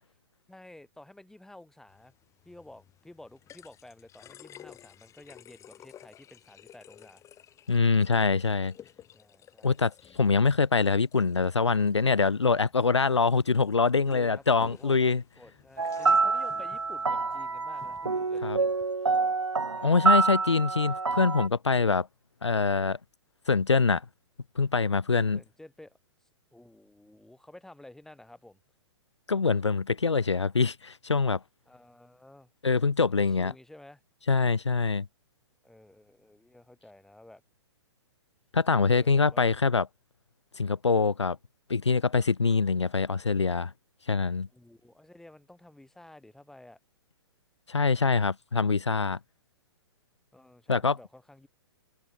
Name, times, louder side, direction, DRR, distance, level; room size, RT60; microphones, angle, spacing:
voice 1, 0.5-2.1 2.4-7.2 9.1-9.8 14.0-18.7 19.6-19.9 25.3-26.0 26.5-28.6 31.7-32.5 33.2-34.0 35.6-37.4 38.9-39.4 44.5-46.8 50.3-51.5, left 1 dB, 5° left, 4.5 m, -52 dB
sound 1, 1.9-18.9, left 10 dB, 20° left, 4.5 m, -55 dB
voice 2, 7.7-8.7 9.6-15.2 18.4-18.6 19.8-22.1 22.4-23.0 23.5-24.0 24.5-25.4 29.3-31.4 32.6-33.5 34.3-35.0 38.5-39.9 40.6-41.4 41.7-43.7 44.1-44.5 47.7-49.2 50.7-51.0, left 4 dB, 80° left, 1.7 m, -24 dB
sound 2, 15.8-21.5, right 4 dB, 85° right, 1.4 m, -27 dB
figure-of-eight pair, 115°, 14 cm